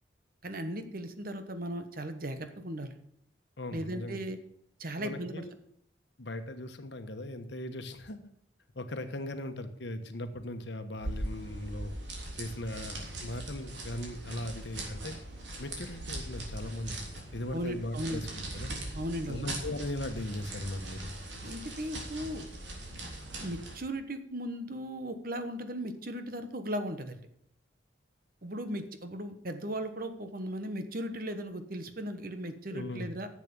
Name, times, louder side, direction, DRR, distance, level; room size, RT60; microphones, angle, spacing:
voice 1, 0.4-2.9 3.7-4.4 4.8-5.5 17.5-18.3 18.9-19.5 21.4-22.5 23.4-27.3 28.4-33.3, right 1 dB, 50° right, 8 dB, 1.2 m, -37 dB
voice 2, 3.6-4.2 5.0-5.5 6.2-8.2 8.7-11.9 12.4-15.2 15.6-17.0 17.3-18.3 18.5-18.7 19.3-21.1 32.7-33.1, left 1 dB, 65° left, 8 dB, 1.2 m, -38 dB
sound 1, 11.0-23.8, right 1 dB, 70° right, 3.3 m, -41 dB
11.0 x 7.6 x 6.8 m, 0.72 s
head